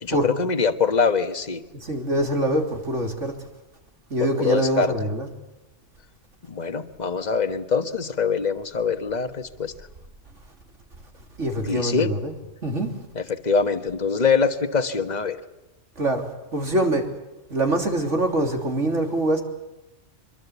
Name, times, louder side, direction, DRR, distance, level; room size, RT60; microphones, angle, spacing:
voice 1, 0.0-1.6 4.2-4.9 6.5-9.7 11.6-12.1 13.1-15.4, left 5 dB, 35° left, 1.5 m, -23 dB
voice 2, 1.8-3.3 4.1-5.3 11.4-12.3 12.6-12.9 16.0-17.0 17.5-19.4, right 1 dB, 80° right, 3.7 m, -24 dB
25.0 x 23.0 x 8.3 m
omnidirectional pair, 1.2 m